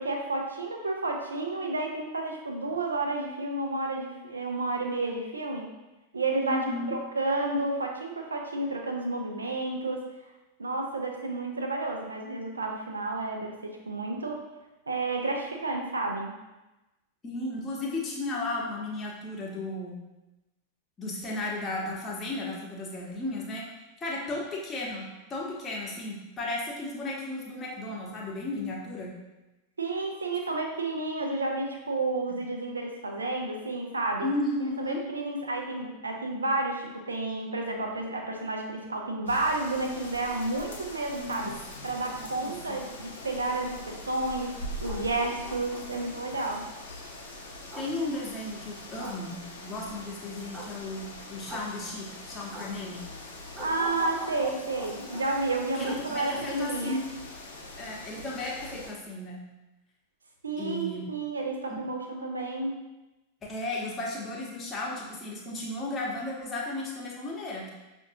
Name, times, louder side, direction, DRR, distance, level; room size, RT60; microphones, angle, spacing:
voice 1, 0.0-5.7 6.1-6.6 6.9-10.0 10.6-14.4 14.9-16.3 29.8-34.3 34.8-41.5 41.8-44.5 44.8-46.6 53.6-57.0 60.4-62.8, right 2 dB, 75° right, 2 dB, 0.6 m, -31 dB
voice 2, 6.4-7.0 17.2-20.0 21.0-23.6 24.0-29.1 34.2-35.0 41.2-41.5 42.2-42.8 47.7-53.0 55.7-57.0 57.8-59.4 60.6-61.1 61.7-61.8 63.4-67.7, left 2 dB, 20° left, -3 dB, 1.0 m, -34 dB
sound 1, 39.3-58.9, left 1 dB, 65° left, 0.7 m, -43 dB
sound 2, 44.6-46.0 47.7-47.9 49.0-49.2 50.5-50.7 51.5-51.7 52.5-52.7 53.5-55.3 55.8-56.0 56.3-56.4, right 1 dB, 25° right, 0.7 m, -42 dB
5.8 x 2.7 x 2.7 m, 1.0 s
figure-of-eight pair, 90°, 0 cm